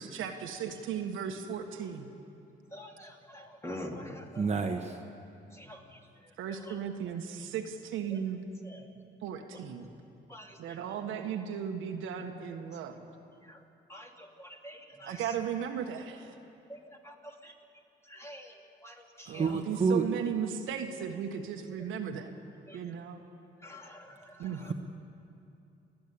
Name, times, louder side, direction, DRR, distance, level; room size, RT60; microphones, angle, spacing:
voice 1, 0.0-2.1 6.4-8.4 9.2-9.9 10.6-13.1 15.0-16.3 19.3-22.3 22.7-23.2 24.4-24.7, right 8 dB, 90° right, 4 dB, 1.5 m, -36 dB
voice 2, 2.7-4.4 5.5-6.0 6.5-6.8 8.1-8.2 8.6-8.9 10.3-10.8 13.4-13.6 13.9-15.3 16.7-17.5 18.1-19.6 22.7-22.8 23.6-24.7, equal, 15° left, 1 dB, 2.7 m, -46 dB
voice 3, 4.3-5.0 19.3-20.0 24.6-24.7, right 5 dB, 35° right, 4 dB, 1.2 m, -29 dB
29.0 x 10.5 x 8.5 m, 2.7 s
cardioid pair, 90°, 20 cm